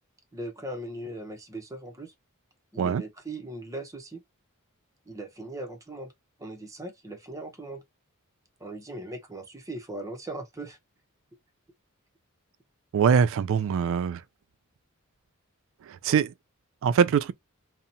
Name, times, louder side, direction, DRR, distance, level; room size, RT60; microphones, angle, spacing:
voice 1, 0.3-2.1 2.7-4.2 5.1-6.1 6.4-7.8 8.6-10.8, right 1 dB, 15° right, 0.6 m, -39 dB
voice 2, 12.9-14.2 16.0-16.3 16.8-17.3, right 7 dB, 60° right, 0.3 m, -22 dB
2.7 x 2.0 x 2.6 m
head